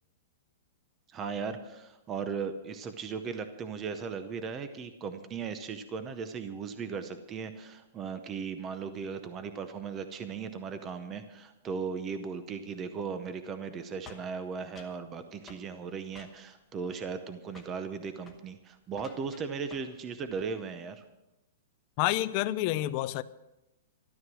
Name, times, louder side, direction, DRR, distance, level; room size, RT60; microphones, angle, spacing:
voice 1, 1.1-21.0, right 5 dB, 15° right, 0.6 m, -37 dB
sound 1, 14.1-15.0 15.5-15.7 16.1-16.6 16.9-17.3 17.5-17.8 18.2-18.4 18.9-20.0 20.3-20.6, left 5 dB, 10° left, 1.1 m, -52 dB
voice 2, 22.0-23.2, left 15 dB, 30° left, 0.5 m, -28 dB
13.0 x 13.0 x 6.1 m
hypercardioid pair, 175°, 0 cm